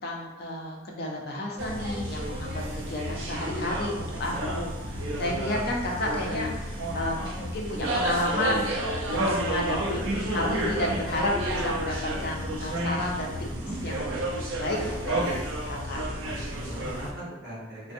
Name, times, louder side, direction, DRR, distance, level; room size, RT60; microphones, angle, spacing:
voice 1, 0.0-13.3 13.8-14.1 14.6-14.8 15.1-16.0, left 1 dB, 55° left, -1 dB, 0.5 m, -32 dB
sound 1, 1.6-17.1, right 1 dB, 90° right, 0.5 m, -30 dB
voice 2, 13.3-13.8 16.2-17.9, right 1 dB, 60° right, -9 dB, 0.9 m, -40 dB
2.5 x 2.1 x 2.6 m, 0.99 s
head